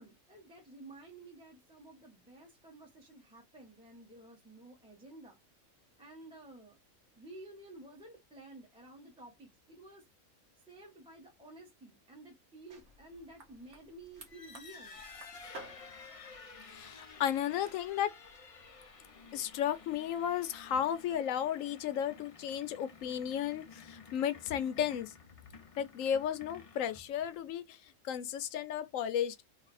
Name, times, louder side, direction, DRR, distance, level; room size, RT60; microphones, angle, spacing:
voice 1, 0.0-5.4 6.0-6.8 7.2-10.0 10.7-15.0, right 2 dB, 5° right, 0.9 m, -53 dB
sound 1, 12.7-21.2, right 2 dB, 60° right, 1.3 m, -57 dB
sound 2, 14.2-27.6, left 5 dB, 50° left, 0.4 m, -53 dB
voice 2, 16.7-18.1 19.3-25.1 25.8-27.8 28.0-29.4, left 9 dB, 75° left, 1.0 m, -34 dB
3.3 x 2.4 x 4.1 m
omnidirectional pair, 1.4 m